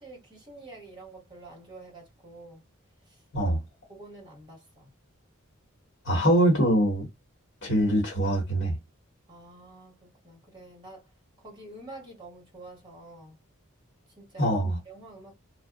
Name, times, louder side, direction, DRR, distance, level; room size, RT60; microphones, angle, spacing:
voice 1, 0.0-2.6 3.1-3.2 3.9-4.9 9.3-11.1 11.4-13.4 14.2-14.6 14.8-15.3, right 2 dB, 25° right, 1.5 m, -47 dB
voice 2, 6.0-7.1 7.6-8.8 14.4-14.8, right 1 dB, 55° left, 1.1 m, -23 dB
2.7 x 2.2 x 2.3 m
head